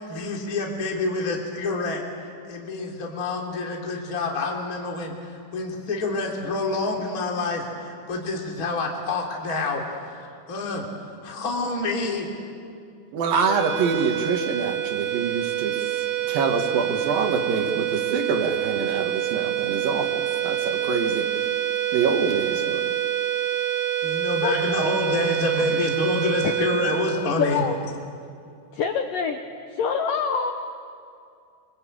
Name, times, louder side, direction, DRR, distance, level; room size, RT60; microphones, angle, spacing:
voice 1, 0.0-2.0 2.5-10.9 11.2-12.3 24.0-27.6, left 3 dB, 20° left, -1 dB, 2.8 m, -27 dB
voice 2, 13.1-20.1 20.4-21.3 21.9-22.8, right 5 dB, 60° right, 3 dB, 2.9 m, -26 dB
sound 1, 13.4-28.0, right 13 dB, 85° right, 4.0 m, -27 dB
voice 3, 25.5-25.9 26.4-26.5 27.4-27.8 28.7-29.4 29.7-30.5, left 6 dB, 75° left, 5 dB, 2.0 m, -26 dB
25.5 x 24.0 x 8.7 m, 2.4 s
omnidirectional pair, 5.5 m